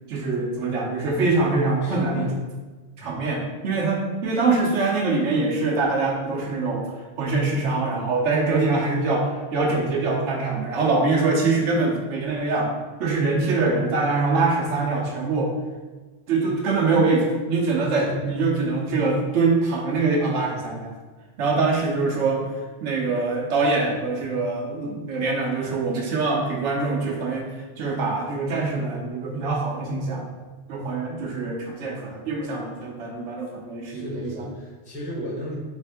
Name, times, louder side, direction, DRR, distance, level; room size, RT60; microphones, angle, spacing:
voice 1, 0.1-2.3 3.0-6.8 7.2-12.7 13.0-15.5 16.3-20.9 21.4-22.4 22.8-27.5 27.8-30.2 30.7-34.3, right 3 dB, 90° right, -1 dB, 1.0 m, -24 dB
voice 2, 1.8-2.4 3.0-3.2 17.9-18.2 33.8-35.5, left 1 dB, 10° right, -5 dB, 0.7 m, -34 dB
3.6 x 3.4 x 3.4 m, 1.3 s
omnidirectional pair, 1.2 m